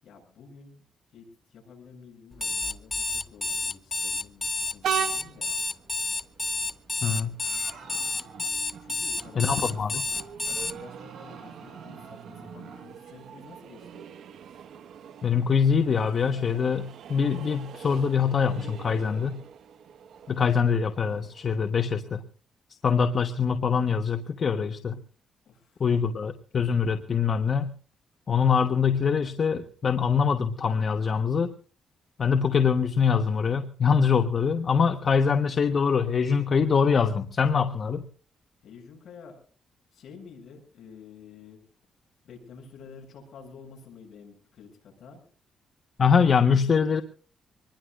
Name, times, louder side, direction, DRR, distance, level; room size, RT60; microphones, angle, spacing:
voice 1, 0.0-5.5 8.8-9.8 10.4-14.1 25.4-25.9 38.6-39.4 39.9-41.6 42.2-45.2, left 5 dB, 65° left, 1 dB, 7.8 m, -50 dB
Alarm, 2.3-10.7, left 3 dB, 20° left, 0.7 m, -30 dB
Train, 4.8-22.1, right 9 dB, 70° right, 1.3 m, -41 dB
voice 2, 7.0-7.4 9.4-9.9 15.2-19.4 20.3-22.2 22.8-25.0 25.8-27.7 28.3-31.5 32.2-38.0 46.0-47.0, left 6 dB, 40° left, 7 dB, 1.1 m, -24 dB
sound 1, 7.4-8.9 9.2-9.3 9.6-9.8 10.1-12.9, right 5 dB, 55° right, 7.9 m, -47 dB
25.0 x 20.5 x 2.5 m, 0.39 s
cardioid pair, 145°, 0 cm